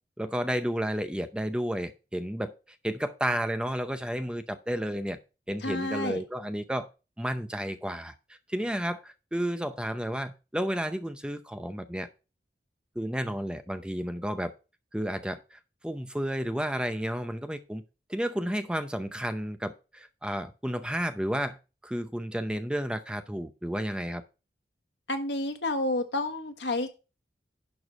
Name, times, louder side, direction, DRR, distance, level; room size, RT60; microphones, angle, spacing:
voice 1, 0.2-2.5 2.8-5.2 5.5-6.9 7.2-12.1 13.0-14.5 14.9-17.8 18.1-21.6 21.8-24.2, equal, 5° right, 9 dB, 0.6 m, -32 dB
voice 2, 5.6-6.2 25.1-26.9, left 2 dB, 90° left, 7 dB, 1.5 m, -30 dB
11.0 x 4.8 x 5.2 m, 0.31 s
head